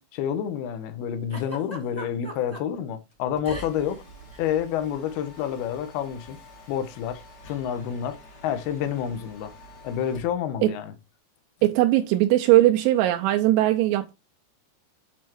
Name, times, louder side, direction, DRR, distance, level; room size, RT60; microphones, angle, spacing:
voice 1, 0.0-4.0 4.4-6.4 6.7-8.2 8.4-9.5 9.8-10.9, left 9 dB, 85° left, 2.2 m, -29 dB
Giggle, 1.3-2.6 3.4-4.0 4.2-4.4 5.4-5.6, equal, 10° right, 0.9 m, -39 dB
Mechanisms, 3.1-10.4, left 1 dB, 65° left, 1.0 m, -47 dB
voice 2, 11.6-14.1, right 15 dB, 85° right, 2.9 m, -20 dB
8.5 x 4.5 x 4.6 m
omnidirectional pair, 5.8 m